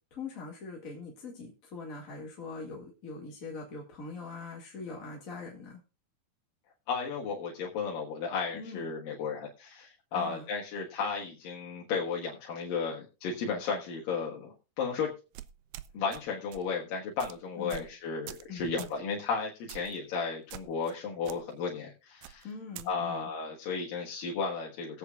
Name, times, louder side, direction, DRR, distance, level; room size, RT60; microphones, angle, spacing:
voice 1, 0.1-5.8 8.5-8.9 10.1-10.5 17.6-17.8 18.5-18.9 22.4-23.3, left 4 dB, 30° left, -2 dB, 1.8 m, -42 dB
voice 2, 6.9-15.1 15.9-22.5 22.9-25.0, left 5 dB, 80° left, -2 dB, 3.2 m, -34 dB
sound 1, 15.3-16.2 16.5-16.7 17.2-17.3 17.7-17.9 18.3-18.5 18.8-19.0 19.7-20.0 20.5-20.9 21.2-21.4 22.2-22.9, right 14 dB, 80° right, 2.3 m, -45 dB
21.0 x 8.4 x 2.4 m, 0.30 s
omnidirectional pair, 4.0 m